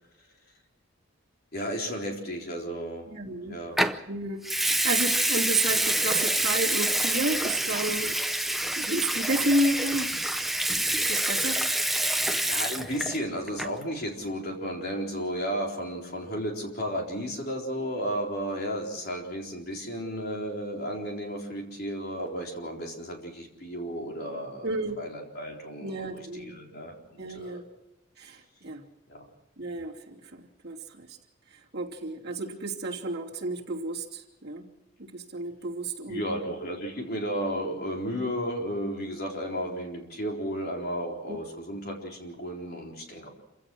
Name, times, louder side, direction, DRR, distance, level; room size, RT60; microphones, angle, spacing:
voice 1, 1.5-3.1 3.5-3.8 12.3-27.6 29.1-29.3 36.1-43.3, equal, 45° left, 0 dB, 4.1 m, -33 dB
voice 2, 3.1-3.6 4.1-10.1 11.1-11.6 24.6-25.0 25.8-26.6 27.2-27.6 28.2-28.8 29.6-31.1 31.7-34.7 35.0-36.2 41.3-41.4, right 2 dB, 50° right, -2 dB, 3.0 m, -31 dB
Water tap faucet / Sink (filling or washing) / Liquid, 3.8-4.0 4.4-13.2 13.5-13.8, right 1 dB, ahead, 0.7 m, -27 dB
27.5 x 16.5 x 6.3 m, 0.92 s
head